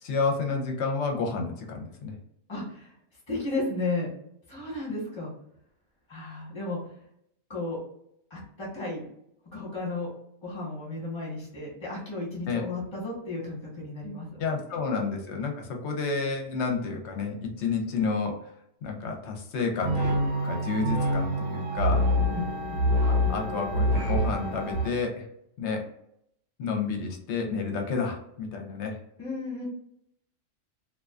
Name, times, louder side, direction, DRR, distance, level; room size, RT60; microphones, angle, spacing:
voice 1, 0.0-2.1 12.5-12.6 14.4-18.4 18.8-20.2 20.4-22.1 23.1-25.3 25.6-25.8 26.6-29.0, left 4 dB, 65° left, 3 dB, 0.8 m, -30 dB
voice 2, 2.5-2.9 3.3-4.1 4.5-5.3 6.1-6.8 7.5-7.8 8.3-9.0 9.5-10.1 10.4-14.4 14.7-14.8 22.3-22.8 29.2-29.7, left 2 dB, 25° left, -4 dB, 1.0 m, -34 dB
sound 1, 19.8-24.9, equal, 75° right, 1.0 m, -26 dB
2.4 x 2.3 x 2.3 m, 0.74 s
omnidirectional pair, 1.4 m